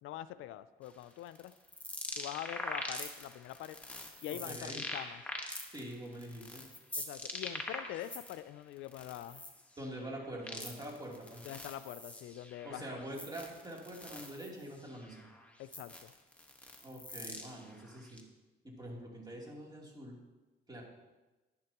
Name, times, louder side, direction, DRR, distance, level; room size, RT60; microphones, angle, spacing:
voice 1, 0.0-1.5 2.2-3.8 4.2-5.2 7.0-9.5 11.4-12.8 15.6-16.1, left 12 dB, 85° left, 14 dB, 0.4 m, -44 dB
sound 1, 0.9-8.4 8.8-18.2, left 1 dB, 5° left, 1.4 m, -44 dB
voice 2, 4.3-4.8 5.7-6.6 9.8-11.4 12.6-15.2 16.8-18.2 18.6-20.2 20.7-20.8, right 1 dB, 20° right, -3 dB, 3.1 m, -45 dB
11.0 x 11.0 x 3.0 m, 1.1 s
cardioid pair, 90°, 20 cm